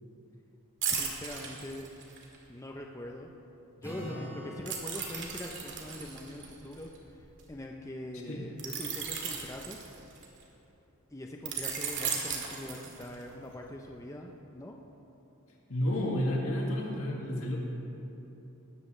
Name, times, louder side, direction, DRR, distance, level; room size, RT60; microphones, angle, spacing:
sound 1, 0.8-2.4 4.7-7.4 8.6-10.4 11.5-13.3 13.7-13.9, right 6 dB, 60° right, 2.1 m, -36 dB
voice 1, 0.9-1.9 2.5-3.3 3.8-9.8 11.1-14.8, left 1 dB, 15° left, 1 dB, 0.6 m, -43 dB
Acoustic guitar, 3.8-7.5, equal, 10° right, 3.4 m, -47 dB
voice 2, 15.7-17.6, left 1 dB, 85° left, -2 dB, 2.1 m, -31 dB
19.0 x 13.5 x 3.2 m, 3.0 s
head